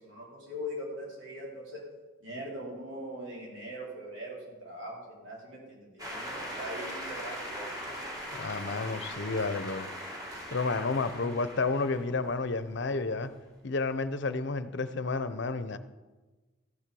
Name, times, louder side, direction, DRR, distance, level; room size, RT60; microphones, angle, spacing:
voice 1, 0.0-1.8 2.2-7.7, equal, 65° right, 4.3 m, -41 dB
sound 1, 6.0-12.8, equal, 20° right, 2.2 m, -40 dB
voice 2, 8.3-9.9 10.5-13.3 13.6-15.8, left 3 dB, 60° left, 0.7 m, -31 dB
14.0 x 7.6 x 6.9 m
head